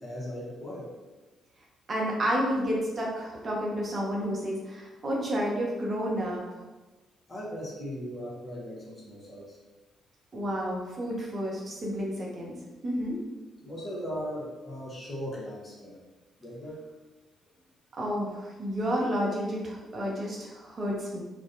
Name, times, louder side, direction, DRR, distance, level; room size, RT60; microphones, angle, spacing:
voice 1, 0.0-0.9 7.3-9.6 13.6-16.0 16.4-16.8, equal, 30° left, -4 dB, 0.9 m, -38 dB
voice 2, 1.9-6.4 10.3-12.5 12.8-13.2 18.0-21.2, equal, 40° right, -3 dB, 0.6 m, -30 dB
2.5 x 2.1 x 2.5 m, 1.2 s
figure-of-eight pair, 40°, 0 cm